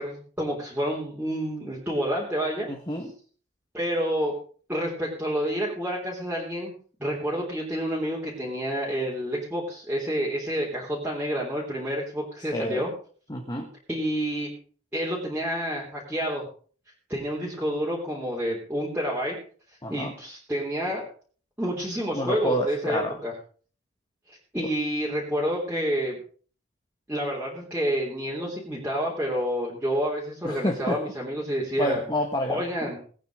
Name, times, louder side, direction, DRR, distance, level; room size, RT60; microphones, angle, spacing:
voice 1, 0.0-2.7 3.7-4.4 4.7-6.7 7.0-12.9 13.9-14.5 14.9-16.5 17.1-19.4 19.9-21.1 21.6-23.3 24.3-26.2 27.1-32.0 32.5-33.0, equal, 10° right, -5 dB, 3.5 m, -29 dB
voice 2, 2.7-3.1 12.5-12.8 13.3-13.7 19.8-20.1 22.1-23.2 30.4-31.0 31.8-32.9, equal, 20° left, 3 dB, 1.6 m, -28 dB
19.0 x 9.2 x 5.1 m, 0.43 s
head